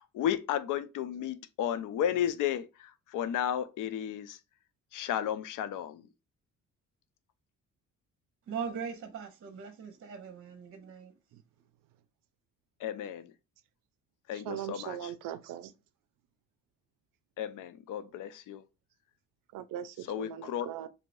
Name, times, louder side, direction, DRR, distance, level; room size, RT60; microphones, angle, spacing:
voice 1, 0.0-4.4 4.9-6.0 12.8-13.3 14.3-15.1 17.4-18.6 20.1-20.7, left 10 dB, 70° left, 0.5 m, -33 dB
voice 2, 8.5-11.1, right 6 dB, 40° right, 0.7 m, -40 dB
voice 3, 14.3-15.7 19.5-20.9, right 11 dB, 80° right, 0.5 m, -40 dB
3.1 x 2.7 x 2.5 m
cardioid pair, 90°, 32 cm